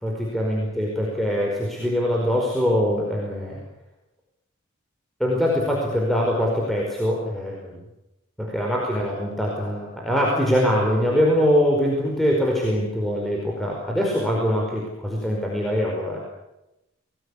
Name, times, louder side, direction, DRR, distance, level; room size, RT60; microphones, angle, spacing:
voice 1, 0.0-3.6 5.2-7.8 8.4-16.2, equal, ahead, -3 dB, 5.0 m, -23 dB
27.5 x 20.0 x 8.5 m, 0.92 s
head